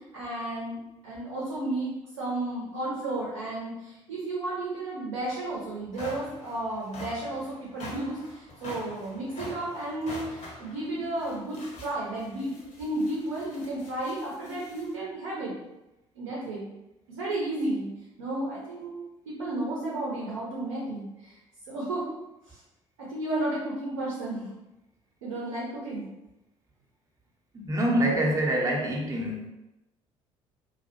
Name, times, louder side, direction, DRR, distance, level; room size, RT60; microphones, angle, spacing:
voice 1, 0.1-0.8 1.0-15.5 16.1-16.7 17.1-17.9 18.2-19.0 19.3-21.4 21.7-22.1 22.5-22.6 23.0-24.5 25.2-26.1, right 1 dB, 70° right, -6 dB, 0.7 m, -33 dB
sound 1, 5.2-5.3 5.7-14.9, left 1 dB, 45° left, 0.8 m, -45 dB
voice 2, 27.5-29.5, right 1 dB, 20° right, -2 dB, 0.7 m, -26 dB
2.3 x 2.1 x 2.8 m, 0.95 s
figure-of-eight pair, 50°, 16 cm